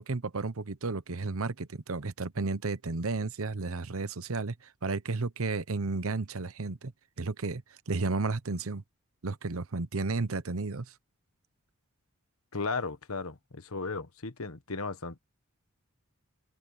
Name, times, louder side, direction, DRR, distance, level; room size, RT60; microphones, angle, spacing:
voice 1, 0.0-4.5 4.8-6.9 7.2-8.8 9.2-10.9, right 3 dB, 70° right, 0.9 m, -32 dB
voice 2, 12.5-15.2, left 4 dB, 75° left, 1.4 m, -35 dB
open air
head